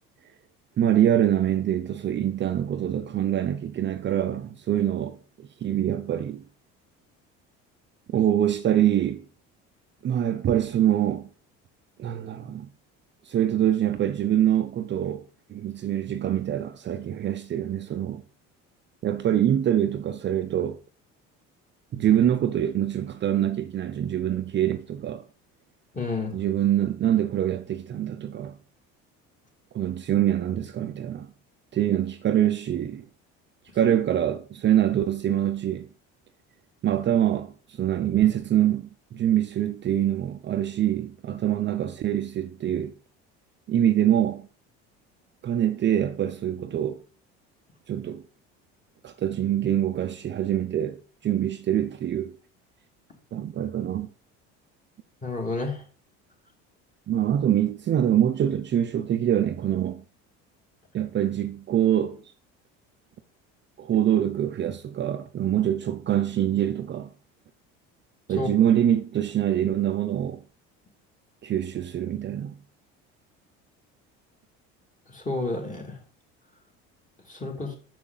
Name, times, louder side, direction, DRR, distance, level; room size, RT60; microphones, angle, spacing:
voice 1, 0.8-6.4 8.1-9.2 10.0-11.3 12.0-12.7 13.3-15.2 15.5-18.2 19.0-20.8 21.9-25.2 26.3-28.6 29.7-31.3 31.7-33.1 33.8-35.9 36.8-42.9 43.7-44.5 45.4-47.0 47.9-48.2 49.0-52.3 53.3-54.1 57.1-60.0 60.9-62.2 63.8-67.1 68.3-70.4 71.4-72.6, right 11 dB, 40° right, 0.6 m, -24 dB
voice 2, 25.9-26.3 55.2-55.8 68.4-68.5 75.1-75.9 77.3-77.7, left 3 dB, 25° left, 2.6 m, -30 dB
6.6 x 6.0 x 3.9 m
supercardioid pair, 95°, 30 cm